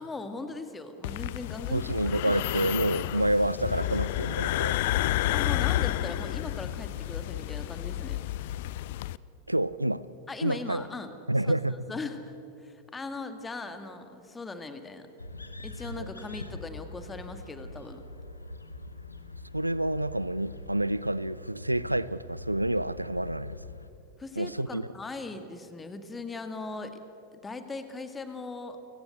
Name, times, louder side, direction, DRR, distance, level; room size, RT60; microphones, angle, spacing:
voice 1, 0.0-1.9 5.3-8.2 10.3-11.1 11.5-11.6 11.9-12.3 12.6-15.1 15.6-18.0 24.2-27.0 27.3-28.8, left 3 dB, 15° left, 9 dB, 2.0 m, -39 dB
sound 1, 1.0-9.2, left 15 dB, 50° left, 0.5 m, -30 dB
voice 2, 1.7-4.7 9.5-10.1 10.4-10.8 11.3-11.7 15.9-16.1 19.5-23.6 24.4-24.8, right 1 dB, 85° right, 18 dB, 0.5 m, -28 dB
sound 2, 15.2-23.9, left 2 dB, 80° left, 1.3 m, -43 dB
30.0 x 16.0 x 8.2 m, 2.9 s
figure-of-eight pair, 90°, 0 cm